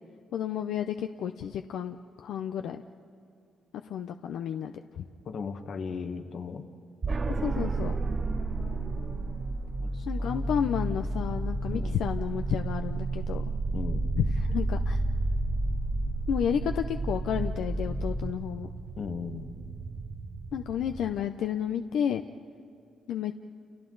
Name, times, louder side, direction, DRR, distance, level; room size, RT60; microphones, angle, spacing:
voice 1, 0.3-2.8 3.8-5.0 7.4-7.9 10.1-13.5 14.2-15.0 16.3-18.7 20.5-22.2 23.1-23.4, left 9 dB, 85° left, 6 dB, 0.5 m, -31 dB
voice 2, 5.2-6.6 8.5-9.5 9.8-10.5 11.7-12.0 13.7-14.0 19.0-19.5, left 5 dB, 60° left, 7 dB, 1.4 m, -38 dB
sound 1, 7.0-18.3, right 2 dB, 35° right, 0.7 m, -31 dB
sound 2, 10.3-21.1, right 4 dB, 85° right, 1.1 m, -42 dB
29.5 x 29.0 x 3.9 m, 2.3 s
cardioid pair, 95°, 0 cm